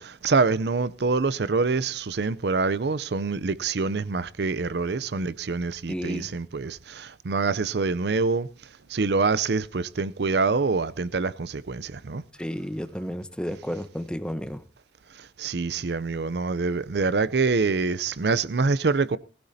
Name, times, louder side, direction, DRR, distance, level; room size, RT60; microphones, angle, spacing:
voice 1, 0.0-8.5 8.9-12.2 15.4-19.2, right 4 dB, 65° right, 0.6 m, -25 dB
voice 2, 5.9-6.3 12.4-14.6, equal, 5° left, 0.8 m, -32 dB
19.5 x 15.5 x 2.8 m
head